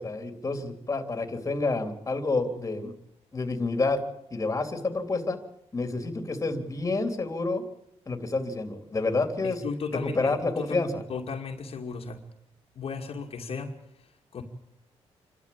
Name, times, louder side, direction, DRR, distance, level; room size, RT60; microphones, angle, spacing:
voice 1, 0.0-2.9 3.3-4.0 4.3-5.4 5.7-7.6 8.1-9.6 10.1-11.0, left 3 dB, 25° left, 6 dB, 3.2 m, -28 dB
voice 2, 9.4-12.2 12.7-13.8 14.3-14.4, left 5 dB, 60° left, 1 dB, 2.4 m, -35 dB
27.5 x 12.5 x 8.7 m, 0.79 s
cardioid pair, 110°, 11 cm